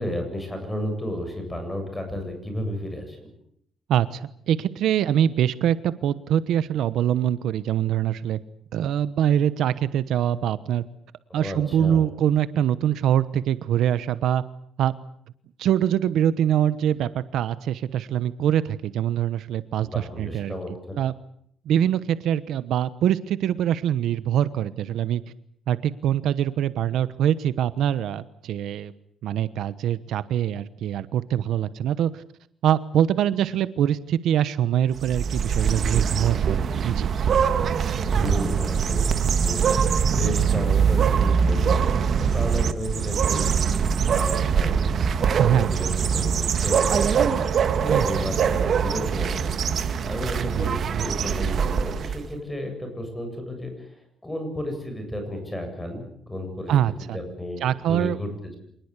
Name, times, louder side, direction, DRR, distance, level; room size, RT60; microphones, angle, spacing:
voice 1, 0.0-3.3 11.3-12.1 19.8-20.9 38.0-39.8 40.1-43.5 44.1-44.9 45.2-47.2 47.8-49.5 50.0-53.9 54.2-56.7 57.1-58.6, left 1 dB, 10° left, 5 dB, 7.9 m, -33 dB
voice 2, 3.9-8.4 8.7-10.8 11.3-14.4 14.8-14.9 15.6-20.5 21.0-21.1 21.7-25.2 25.7-28.9 29.2-32.2 32.6-37.1 45.4-45.7 47.9-48.1 50.4-51.0 56.7-57.2 57.6-58.2, right 10 dB, 75° right, 15 dB, 1.0 m, -24 dB
sound 1, 35.0-52.3, right 7 dB, 45° right, 1.7 m, -23 dB
26.5 x 19.5 x 8.3 m, 0.69 s
cardioid pair, 150°, 0 cm